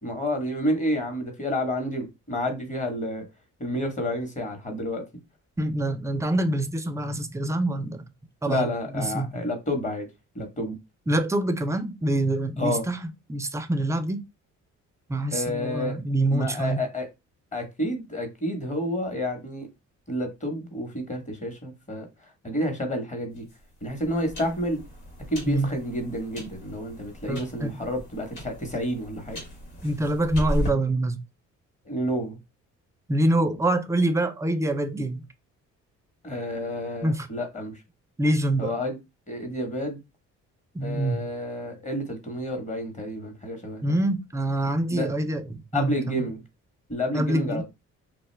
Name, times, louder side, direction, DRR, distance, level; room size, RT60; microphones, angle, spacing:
voice 1, 0.0-3.2 3.6-5.0 8.5-10.1 10.3-10.8 12.6-12.8 15.3-16.0 16.3-17.1 17.5-19.7 20.1-22.1 22.4-23.4 23.8-24.8 25.3-29.4 31.9-32.4 36.2-37.7 38.6-39.0 39.3-40.0 40.8-43.8 44.9-45.1 45.7-46.4 46.9-47.6, left 1 dB, 25° left, 1.0 m, -29 dB
voice 2, 5.6-8.0 8.4-8.7 8.9-9.4 11.1-13.0 13.3-14.2 15.1-16.8 25.5-25.7 27.3-27.7 29.8-31.2 33.1-35.2 37.0-37.3 38.2-38.7 40.7-41.2 43.8-46.3 47.1-47.6, right 1 dB, 10° right, 0.4 m, -25 dB
sound 1, 23.4-30.7, equal, 90° left, 1.5 m, -36 dB
2.5 x 2.2 x 3.2 m
cardioid pair, 90°, 30 cm